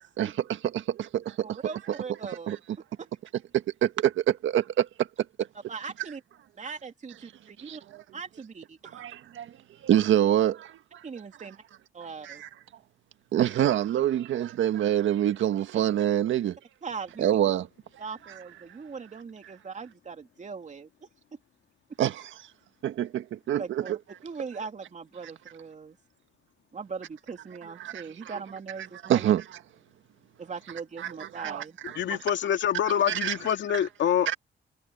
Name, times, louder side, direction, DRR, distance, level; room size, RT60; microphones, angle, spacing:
voice 1, 0.2-1.6 2.5-2.6 3.5-5.1 7.7-8.0 8.9-9.5 9.8-11.0 12.2-12.5 13.3-16.6 17.2-17.7 22.0-22.3 22.8-24.0 27.8-28.0 29.0-29.4 31.0-32.0 33.1-33.3 34.3-34.4, right 11 dB, 75° right, 1.7 m, -26 dB
voice 2, 1.4-2.6 3.0-3.1 5.7-6.2 6.6-7.8 8.1-9.1 11.0-11.6 11.9-12.4 16.8-17.4 18.0-20.9 23.6-26.0 26.7-29.3 30.4-31.8 32.1-32.2, right 5 dB, 35° right, 3.1 m, -40 dB
voice 3, 31.8-34.4, left 9 dB, 70° left, 2.3 m, -26 dB
cardioid pair, 90°, 20 cm